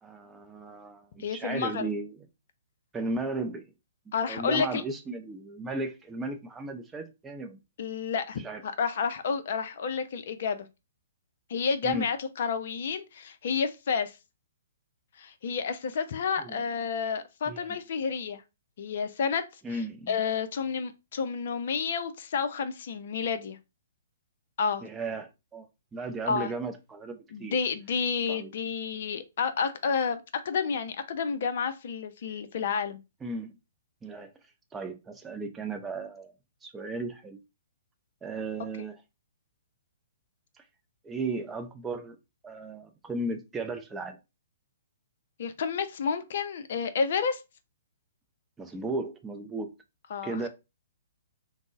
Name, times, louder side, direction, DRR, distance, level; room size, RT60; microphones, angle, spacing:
voice 1, 0.0-2.3 2.9-3.7 4.3-7.6 8.4-8.6 11.8-12.1 16.4-16.6 17.5-17.8 19.6-20.2 24.8-27.6 28.3-28.5 33.2-33.5 34.0-34.3 34.7-36.3 36.6-37.4 38.2-39.0 41.0-42.2 42.4-44.2 48.6-49.7 50.2-50.5, right 3 dB, 10° right, 0.5 m, -35 dB
voice 2, 1.2-1.9 4.1-4.8 7.8-10.7 11.5-14.2 15.2-18.4 18.8-19.4 19.7-19.8 20.1-23.6 24.6-24.8 26.3-26.5 27.3-33.0 45.4-47.4 50.1-50.5, left 6 dB, 55° left, 0.4 m, -30 dB
3.7 x 2.0 x 3.5 m
figure-of-eight pair, 120°, 0 cm